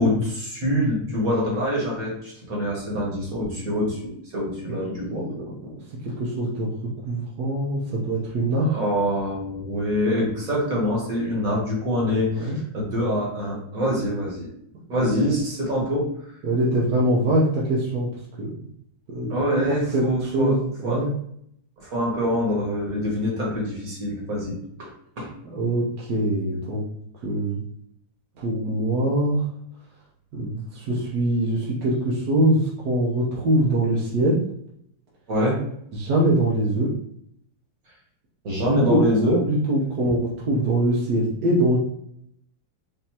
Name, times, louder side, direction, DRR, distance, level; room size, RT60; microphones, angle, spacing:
voice 1, 0.0-5.3 8.6-14.5 14.9-16.1 19.3-20.5 20.8-21.0 21.8-24.9 25.2-25.3 35.3-35.6 38.4-39.4, equal, 45° right, -4 dB, 1.5 m, -25 dB
voice 2, 5.1-5.5 6.0-6.7 7.1-8.7 12.3-12.6 15.0-15.1 16.4-18.1 18.4-18.5 19.1-19.6 19.9-21.1 25.5-26.8 27.2-27.6 28.4-29.4 30.3-34.4 35.9-36.9 38.7-39.0 39.5-41.8, right 1 dB, 65° right, -5 dB, 1.2 m, -23 dB
5.4 x 2.7 x 2.8 m, 0.70 s
omnidirectional pair, 2.3 m